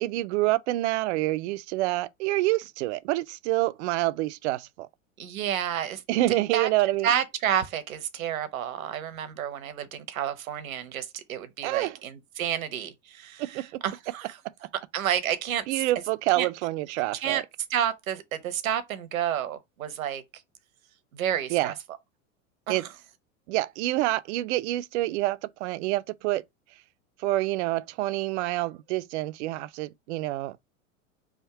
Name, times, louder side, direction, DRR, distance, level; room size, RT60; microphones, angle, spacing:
voice 1, 0.0-4.9 6.1-7.1 11.6-12.0 13.4-13.8 15.7-17.4 21.5-21.7 22.7-22.9 23.5-26.4 27.2-30.6, right 17 dB, 60° right, 0.5 m, -27 dB
voice 2, 5.2-6.0 6.5-6.7 7.0-14.4 14.9-15.8 16.3-16.5 17.2-17.4 17.7-20.2 21.1-21.7 22.7-22.8, right 10 dB, 80° right, 0.9 m, -30 dB
3.6 x 2.5 x 4.6 m
hypercardioid pair, 95°, 41 cm